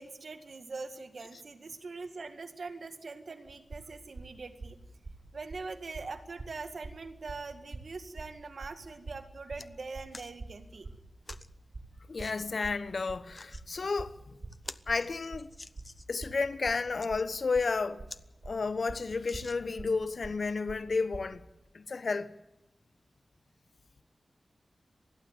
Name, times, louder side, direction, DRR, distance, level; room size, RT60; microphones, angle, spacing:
voice 1, 0.0-4.8 5.3-10.9, right 4 dB, 70° right, 2.0 m, -43 dB
sound 1, 3.5-21.4, right 3 dB, 55° right, 4.3 m, -45 dB
sound 2, 9.6-9.7 10.1-10.3 11.3-11.5 12.2-12.4 13.1-13.7 14.1-14.2 14.5-16.2 16.8-17.1 17.7-17.8 18.1-18.3 18.6-18.7 19.2-19.9 20.6-20.7, left 2 dB, 35° left, 0.7 m, -48 dB
voice 2, 12.1-14.2 14.9-15.5 16.1-18.0 18.4-21.4 21.7-22.3, left 4 dB, 65° left, 1.1 m, -32 dB
30.0 x 12.0 x 9.4 m
wide cardioid pair, 70°, 0 cm